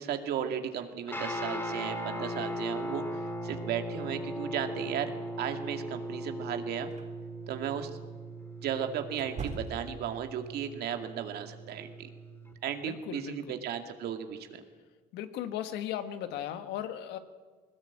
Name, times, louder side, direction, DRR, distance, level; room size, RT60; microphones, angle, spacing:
voice 1, 0.0-5.1 5.4-6.9 7.5-7.9 8.6-12.1 12.6-14.6, right 9 dB, 70° right, 6 dB, 2.3 m, -35 dB
Guitar, 1.1-12.5, equal, 15° left, 4.4 m, -38 dB
sound 1, 6.9-7.1 9.1-10.1, right 4 dB, 45° right, 3.6 m, -40 dB
voice 2, 12.8-13.6 15.1-17.2, left 10 dB, 90° left, 9 dB, 1.6 m, -37 dB
21.0 x 19.0 x 8.7 m, 1.4 s
cardioid pair, 110°, 17 cm